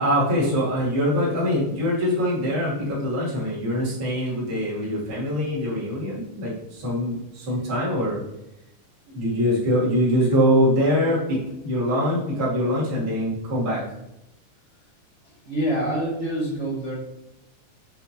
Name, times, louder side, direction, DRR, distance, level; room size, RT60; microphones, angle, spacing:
voice 1, 0.0-8.2 9.1-13.8, equal, 40° right, -7 dB, 2.9 m, -23 dB
voice 2, 15.4-16.9, right 1 dB, 70° right, -6 dB, 0.6 m, -26 dB
6.8 x 4.4 x 4.3 m, 0.88 s
omnidirectional pair, 3.9 m